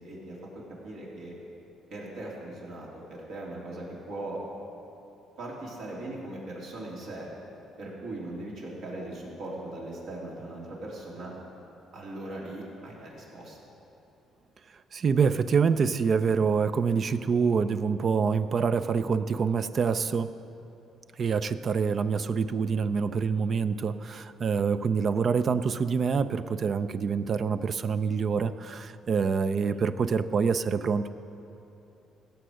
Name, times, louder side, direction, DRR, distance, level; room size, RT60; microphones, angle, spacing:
voice 1, 0.0-1.4 1.9-4.4 5.4-7.3 7.8-11.3 11.9-13.6 29.5-29.8, right 2 dB, 75° right, -4 dB, 3.0 m, -39 dB
voice 2, 14.9-20.3 21.2-31.1, right 5 dB, 45° right, 12 dB, 0.4 m, -26 dB
16.0 x 6.8 x 6.3 m, 2.9 s
cardioid pair, 100°, 0 cm